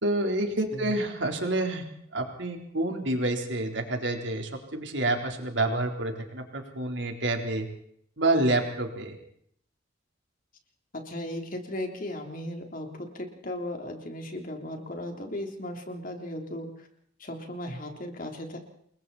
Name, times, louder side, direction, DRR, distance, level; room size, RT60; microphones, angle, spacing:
voice 1, 0.0-1.8 2.1-7.7 8.2-9.1, right 2 dB, 65° right, 3 dB, 4.0 m, -28 dB
voice 2, 10.9-16.9 17.2-18.6, left 1 dB, 45° left, 3 dB, 3.6 m, -36 dB
28.0 x 22.0 x 4.3 m, 0.68 s
head